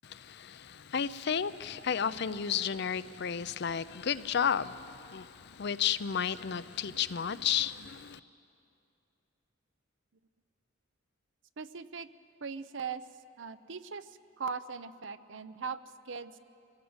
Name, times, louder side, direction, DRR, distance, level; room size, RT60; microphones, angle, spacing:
voice 1, 0.9-4.8 5.1-5.2 5.6-8.2, left 8 dB, 55° left, 0.5 m, -31 dB
voice 2, 11.6-12.1 12.4-13.0 13.4-16.4, right 5 dB, 60° right, 0.7 m, -40 dB
26.0 x 17.0 x 8.0 m
head